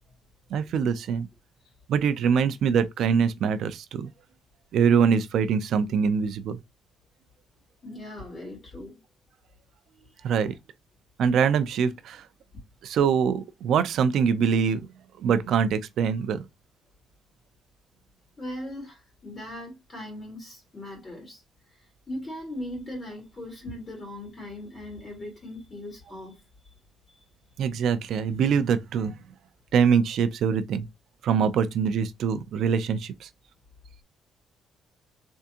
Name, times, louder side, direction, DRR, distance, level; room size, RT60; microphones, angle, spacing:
voice 1, 0.5-1.3 1.9-4.1 4.7-6.6 10.2-10.5 11.2-12.2 12.8-14.9 15.2-16.4 27.6-29.2 29.7-30.9 31.2-33.3, right 6 dB, 70° right, 0.5 m, -24 dB
voice 2, 7.8-9.0 18.4-21.4 22.1-26.4, left 1 dB, 25° left, 2.7 m, -39 dB
3.6 x 3.4 x 2.8 m
cardioid pair, 125°, 0 cm